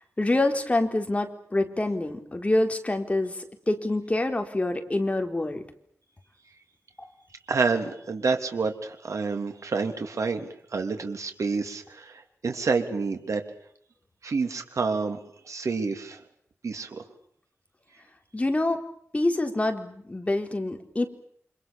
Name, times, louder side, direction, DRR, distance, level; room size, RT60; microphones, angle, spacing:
voice 1, 0.2-3.4 3.7-5.6 18.3-18.8 19.1-21.0, left 2 dB, 25° left, 5 dB, 4.1 m, -26 dB
voice 2, 7.5-13.4 14.2-15.2 15.5-16.2 16.6-17.0, right 4 dB, 90° right, 5 dB, 3.2 m, -28 dB
29.0 x 26.5 x 7.1 m, 0.66 s
wide cardioid pair, 100°, 5 cm